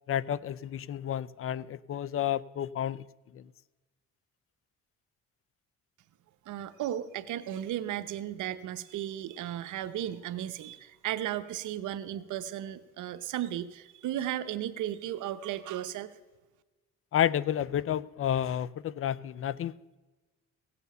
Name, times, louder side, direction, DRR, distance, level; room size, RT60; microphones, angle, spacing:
voice 1, 0.1-3.0 3.3-3.4 17.1-19.7, left 10 dB, 45° left, 0.5 m, -30 dB
voice 2, 6.5-16.1, right 11 dB, 80° right, 0.8 m, -35 dB
17.0 x 7.0 x 6.7 m
cardioid pair, 90°, 30 cm